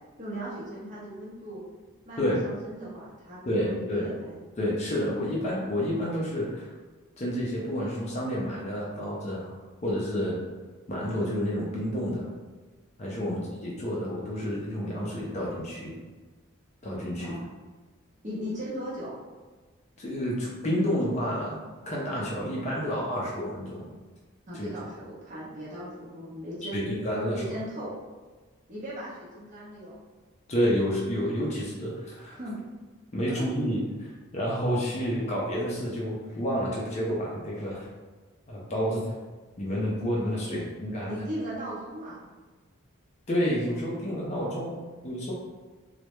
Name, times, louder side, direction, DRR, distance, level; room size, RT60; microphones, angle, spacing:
voice 1, 0.2-1.6 2.1-4.3 13.2-13.4 17.2-17.5 18.2-19.2 24.5-26.9 27.3-27.9 28.7-30.0 32.3-32.6 33.4-33.5 40.5-40.6 41.1-42.2, equal, 35° right, -8 dB, 0.7 m, -38 dB
voice 2, 3.5-4.1 4.6-6.7 7.2-9.6 9.8-10.4 10.9-12.3 13.0-16.0 16.8-17.3 20.0-23.9 24.5-24.7 26.7-27.5 30.5-32.4 33.1-37.9 38.5-39.0 39.6-41.2 43.3-45.3, equal, 30° left, -4 dB, 0.4 m, -29 dB
2.2 x 2.0 x 2.9 m, 1.3 s
head